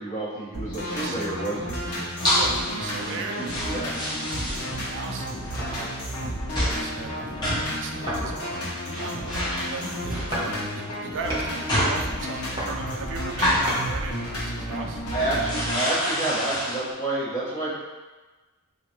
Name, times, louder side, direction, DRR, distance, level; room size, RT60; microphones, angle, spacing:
voice 1, 0.0-1.8 3.7-3.9 9.6-9.9 15.1-17.7, right 2 dB, 35° left, -10 dB, 1.4 m, -29 dB
sound 1, 0.5-15.8, equal, 75° left, 0.8 m, -32 dB
voice 2, 0.9-1.2 2.2-6.3 6.6-9.3 9.6-15.0, right 4 dB, 55° right, 3 dB, 0.3 m, -38 dB
sound 2, 2.2-2.7 3.0-5.1 5.4-5.6 6.5-6.9 7.2-7.8 8.6-8.7 8.9-10.5 11.2-13.7 14.3-14.4 14.8-16.9, equal, 20° left, 0.9 m, -28 dB
sound 3, 5.6-6.0 6.6-7.3 8.1-8.6 9.0-9.7 10.3-10.5 10.8-11.5 12.3-13.9 14.4-14.5, equal, 25° right, 1.0 m, -34 dB
3.8 x 2.5 x 3.1 m, 1.3 s
head